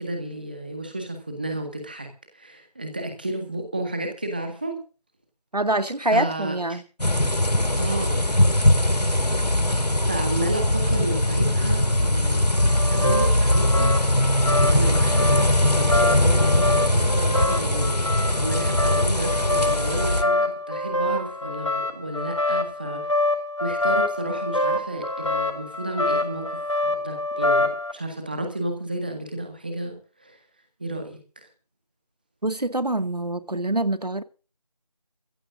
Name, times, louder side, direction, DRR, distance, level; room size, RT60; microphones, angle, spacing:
voice 1, 0.0-2.1 2.3-4.8 6.0-6.8 7.8-8.1 10.1-12.4 12.9-13.9 14.7-23.1 23.6-26.5 26.8-30.4 30.8-31.5, right 1 dB, 15° right, 1.7 m, -32 dB
voice 2, 5.5-6.8 32.4-34.2, right 1 dB, 85° right, 2.0 m, -25 dB
sound 1, 7.0-20.2, left 1 dB, 85° left, 2.4 m, -21 dB
sound 2, 12.6-27.9, left 2 dB, 50° left, 4.9 m, -26 dB
22.5 x 15.5 x 2.6 m
figure-of-eight pair, 175°, 20 cm